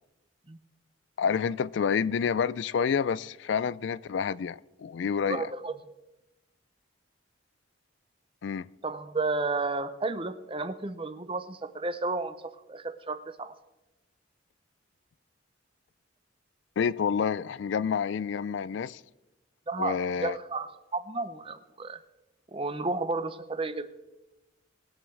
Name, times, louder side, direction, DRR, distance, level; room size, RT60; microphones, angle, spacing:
voice 1, 1.2-5.5 8.4-8.7 16.8-19.0 19.8-20.4, left 6 dB, 65° left, 0.3 m, -28 dB
voice 2, 5.3-5.8 8.8-12.3 12.7-13.6 19.7-22.0 22.5-23.9, right 3 dB, 25° right, 0.7 m, -32 dB
20.5 x 8.4 x 4.6 m
head